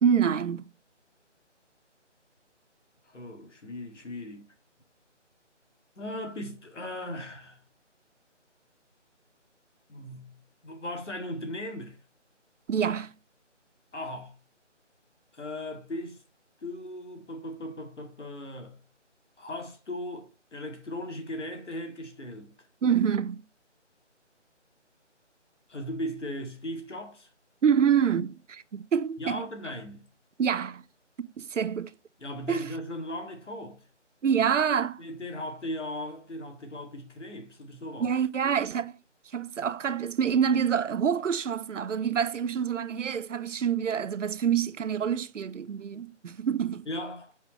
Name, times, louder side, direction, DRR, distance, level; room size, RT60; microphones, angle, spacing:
voice 1, 0.0-0.7 12.7-13.1 22.8-23.4 27.6-29.4 30.4-30.8 31.2-31.9 32.5-32.6 34.2-35.0 38.0-39.0 39.3-46.9, right 7 dB, 85° right, 0.6 m, -26 dB
voice 2, 3.1-4.5 6.0-7.6 9.9-12.0 13.9-14.3 15.3-16.2 16.6-18.8 19.4-22.5 25.7-27.3 29.2-30.1 32.2-33.9 35.0-38.1 46.9-47.3, left 1 dB, 75° left, 2.0 m, -37 dB
5.5 x 5.0 x 4.3 m
figure-of-eight pair, 165°, 36 cm